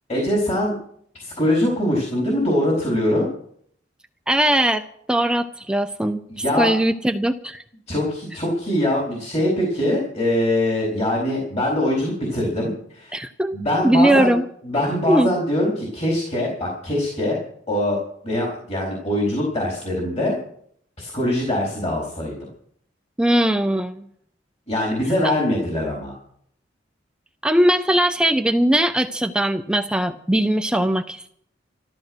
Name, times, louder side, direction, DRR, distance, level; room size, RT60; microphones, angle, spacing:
voice 1, 0.1-0.7 1.1-3.3 6.4-6.7 7.9-13.2 13.5-14.3 14.6-17.4 17.7-18.0 18.2-20.4 21.0-22.3 24.7-26.1, left 1 dB, 35° left, -3 dB, 4.2 m, -22 dB
voice 2, 4.3-6.2 6.6-7.6 13.1-13.6 13.8-14.4 15.1-15.3 23.2-24.0 27.4-31.3, right 1 dB, 5° right, 7 dB, 0.5 m, -20 dB
14.0 x 13.5 x 6.2 m, 0.65 s
head